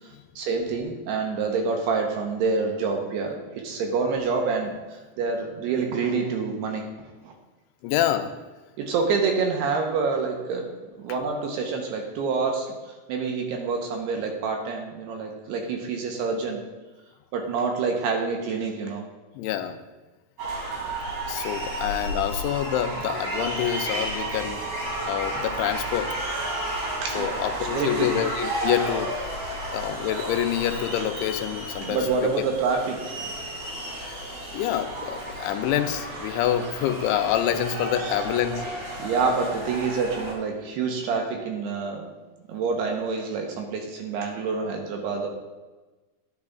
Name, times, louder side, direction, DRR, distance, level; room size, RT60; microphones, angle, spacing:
voice 1, 0.4-6.8 7.2-7.3 8.8-10.7 11.0-16.6 17.3-19.0 27.0-27.4 27.7-28.1 31.8-33.4 39.0-42.1 42.5-45.3, right 4 dB, 75° right, 2 dB, 2.7 m, -27 dB
voice 2, 7.8-8.3 19.4-19.8 21.3-26.1 27.1-29.3 29.7-32.4 34.0-34.2 34.5-38.6, left 11 dB, 85° left, 8 dB, 2.9 m, -27 dB
sound 1, 20.4-40.3, right 1 dB, 45° right, 3.2 m, -32 dB
10.5 x 10.5 x 2.4 m, 1.2 s
omnidirectional pair, 5.2 m